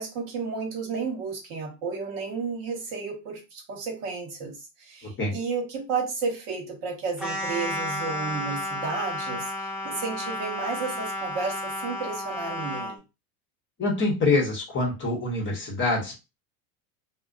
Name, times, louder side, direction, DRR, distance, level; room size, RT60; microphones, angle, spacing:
voice 1, 0.0-13.0, right 5 dB, 55° right, 1 dB, 1.1 m, -32 dB
voice 2, 5.0-5.3 13.8-16.2, left 3 dB, 25° left, -1 dB, 0.9 m, -25 dB
sound 1, 7.2-13.0, left 1 dB, ahead, 0.4 m, -32 dB
2.4 x 2.1 x 2.4 m, 0.26 s
supercardioid pair, 120°, 48 cm